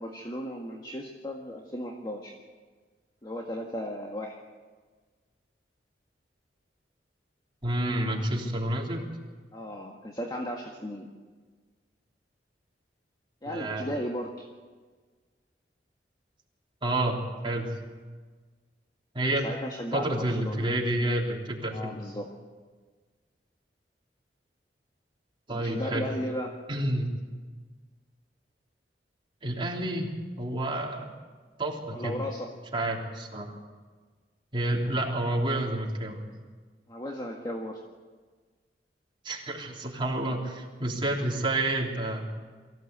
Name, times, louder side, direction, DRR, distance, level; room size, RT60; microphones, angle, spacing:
voice 1, 0.0-2.3 3.2-4.4 8.1-8.2 9.5-11.1 13.4-14.3 19.4-20.7 21.7-22.3 25.5-26.6 31.9-32.5 36.9-37.8, equal, 25° left, 0 dB, 1.7 m, -35 dB
voice 2, 7.6-9.1 13.4-13.8 16.8-17.7 19.1-19.5 19.9-21.9 25.5-26.0 26.7-27.3 29.4-30.1 30.4-31.1 31.6-32.1 32.7-33.5 34.5-36.2 39.2-42.3, right 1 dB, 30° right, -1 dB, 3.4 m, -29 dB
23.0 x 15.5 x 8.2 m, 1.4 s
head